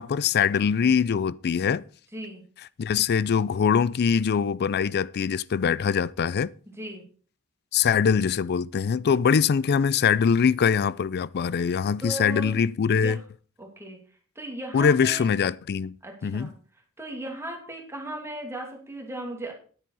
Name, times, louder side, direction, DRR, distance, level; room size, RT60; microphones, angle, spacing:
voice 1, 0.0-1.8 2.8-6.5 7.7-13.2 14.7-16.0 16.2-16.5, left 6 dB, 45° left, 0.4 m, -23 dB
voice 2, 12.0-12.6 13.0-13.2 13.6-14.0 14.4-15.3 16.0-16.5 17.0-19.5, right 1 dB, 10° right, 2.7 m, -36 dB
10.5 x 9.1 x 4.7 m
head